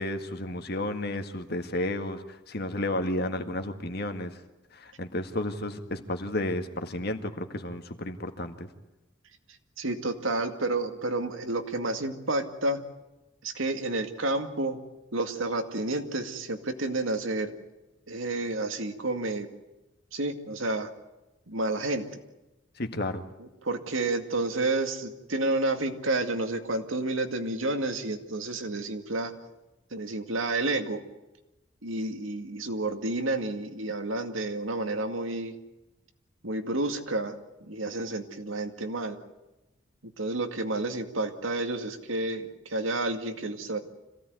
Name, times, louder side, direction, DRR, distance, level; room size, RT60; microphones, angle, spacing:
voice 1, 0.0-4.3 4.8-8.7 22.8-23.2, left 1 dB, 50° left, 7 dB, 1.9 m, -32 dB
voice 2, 9.8-12.8 13.4-14.8 15.1-17.5 18.1-19.5 20.1-20.9 21.5-22.2 23.4-29.3 29.9-31.0 31.8-35.5 36.4-37.4 37.7-39.2 40.0-43.8, right 2 dB, 80° right, 6 dB, 2.2 m, -30 dB
26.0 x 17.0 x 9.4 m, 1.0 s
head